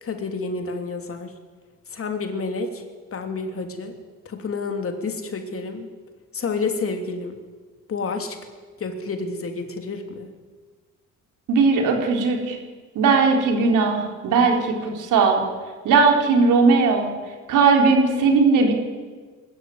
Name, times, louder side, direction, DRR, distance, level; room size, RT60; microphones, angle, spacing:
voice 1, 0.0-1.3 1.9-2.8 3.1-3.9 4.2-5.9 6.3-7.4 7.9-8.4 8.8-10.3, left 4 dB, 45° left, 5 dB, 3.1 m, -29 dB
voice 2, 11.5-12.6 12.9-15.4 15.8-17.1 17.5-18.7, right 4 dB, 85° right, 2 dB, 4.1 m, -18 dB
21.5 x 14.0 x 9.5 m, 1.4 s
cardioid pair, 90°, 30 cm